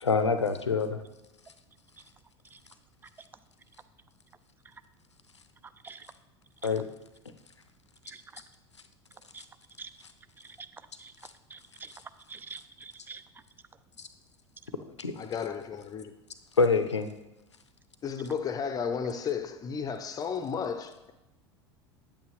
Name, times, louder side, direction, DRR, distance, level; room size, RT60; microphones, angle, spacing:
voice 1, 0.0-1.0 6.6-6.8 14.0-14.1 15.0-15.1 16.6-17.1, left 4 dB, 80° left, 0.6 m, -25 dB
voice 2, 8.1-8.4 9.8-9.9 11.0-11.1 11.5-11.9 12.3-13.2, right 5 dB, 15° right, 0.4 m, -45 dB
voice 3, 15.2-16.1 18.0-21.1, left 6 dB, 25° left, 0.7 m, -33 dB
8.6 x 8.1 x 3.1 m
figure-of-eight pair, 75°, 15 cm